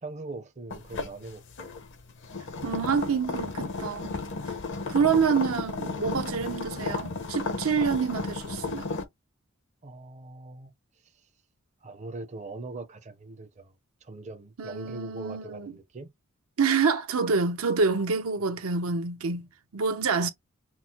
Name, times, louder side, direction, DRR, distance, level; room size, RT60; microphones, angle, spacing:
voice 1, 0.0-1.8 9.8-10.7 11.8-13.7 14.0-16.1, right 2 dB, 35° right, 0.6 m, -41 dB
sound 1, 0.7-9.0, left 3 dB, 60° left, 0.8 m, -34 dB
voice 2, 2.6-4.2 4.9-9.0 14.6-15.7 16.6-19.5 19.7-20.3, right 5 dB, 80° right, 0.7 m, -27 dB
5.9 x 2.0 x 2.9 m
head